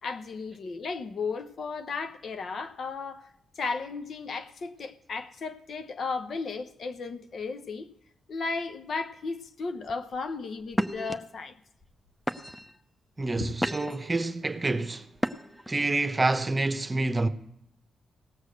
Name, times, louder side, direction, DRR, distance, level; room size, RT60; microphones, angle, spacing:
voice 1, 0.0-3.3 3.6-7.9 8.3-11.6 13.4-13.6, left 4 dB, 65° left, 0.8 m, -35 dB
sound 1, 9.9-10.2 10.7-11.1 11.8-11.9 12.3-12.8 13.3-14.1 15.2-15.7, equal, 10° left, 0.8 m, -31 dB
voice 2, 13.2-15.1 15.7-17.3, right 2 dB, 30° right, 0.9 m, -27 dB
17.5 x 6.5 x 6.4 m
supercardioid pair, 45°, 0 cm